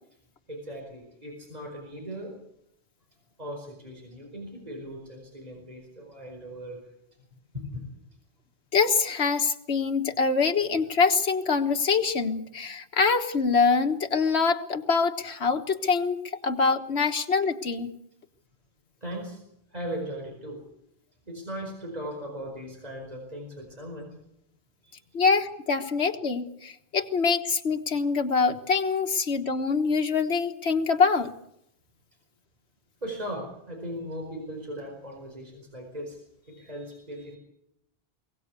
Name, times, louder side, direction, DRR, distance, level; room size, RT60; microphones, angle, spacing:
voice 1, 0.5-2.3 3.4-6.8 7.5-7.8 19.0-19.4 19.7-20.6 21.3-24.1 24.8-25.0 25.8-25.9 33.0-37.4, equal, 40° right, 0 dB, 4.8 m, -38 dB
voice 2, 8.7-17.9 25.1-31.3, left 5 dB, 85° left, 6 dB, 1.7 m, -24 dB
22.5 x 18.5 x 8.3 m, 0.80 s
omnidirectional pair, 1.1 m